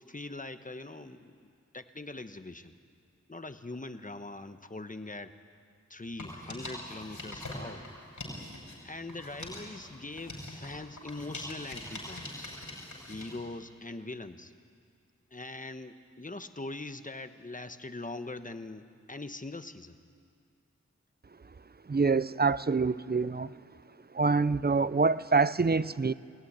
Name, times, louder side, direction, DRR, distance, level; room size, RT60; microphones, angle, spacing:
voice 1, 0.0-2.7 3.3-5.3 5.9-7.8 8.8-12.5 13.1-14.5 15.3-20.0, left 2 dB, 25° left, 9 dB, 1.1 m, -42 dB
sound 1, 6.1-8.8 9.1-13.4, left 1 dB, 90° left, 6.1 m, -43 dB
voice 2, 21.9-23.5 24.1-26.1, right 4 dB, 35° right, 16 dB, 0.5 m, -26 dB
22.0 x 17.5 x 10.0 m, 2.3 s
wide cardioid pair, 60°, 30 cm